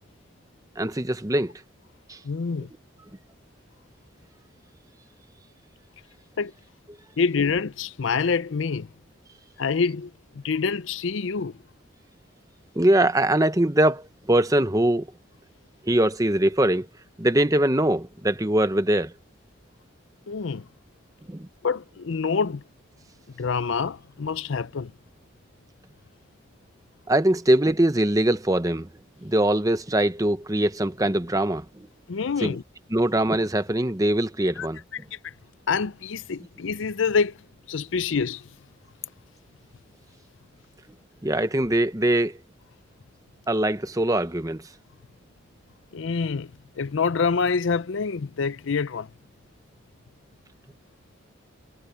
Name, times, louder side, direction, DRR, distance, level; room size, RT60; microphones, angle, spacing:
voice 1, 0.8-1.5 2.1-2.2 12.8-15.1 15.8-16.9 17.2-19.1 21.3-21.5 27.1-28.9 29.2-31.9 32.4-32.6 32.9-34.8 41.2-42.4 43.5-44.6, right 1 dB, 15° right, 0.8 m, -22 dB
voice 2, 2.2-2.7 6.4-6.5 7.2-8.9 9.6-11.5 20.3-20.6 21.6-22.6 23.4-24.9 32.1-32.6 34.6-34.7 35.1-35.3 35.7-37.4 37.7-38.4 45.9-46.5 46.8-49.1, left 5 dB, 70° left, 0.5 m, -26 dB
head